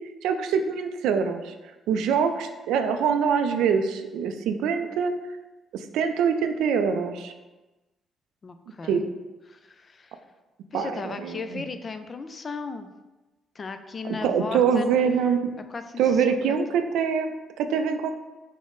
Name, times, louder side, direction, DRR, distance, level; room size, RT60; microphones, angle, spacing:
voice 1, 0.2-1.5 1.9-5.1 5.7-7.3 8.9-9.0 10.7-11.6 14.0-15.5 16.0-18.1, right 6 dB, 85° right, 7 dB, 0.3 m, -24 dB
voice 2, 8.4-9.1 9.5-10.2 10.7-12.9 13.5-15.1 15.7-16.6, left 4 dB, 40° left, 9 dB, 0.3 m, -36 dB
5.1 x 2.1 x 3.7 m, 1.1 s
cardioid pair, 90°, 0 cm